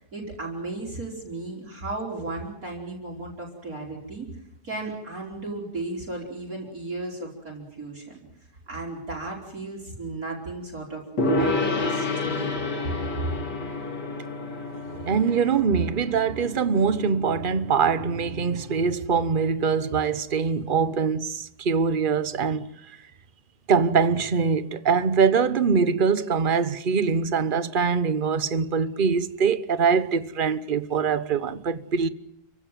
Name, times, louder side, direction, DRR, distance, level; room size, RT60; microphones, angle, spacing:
voice 1, 0.1-8.2 8.7-12.5, right 2 dB, 55° right, 5.4 m, -35 dB
Gong, 11.2-18.6, left 2 dB, 80° left, 3.3 m, -30 dB
voice 2, 15.0-22.7 23.7-32.1, right 5 dB, 35° right, 1.0 m, -23 dB
29.5 x 16.0 x 9.2 m
omnidirectional pair, 1.8 m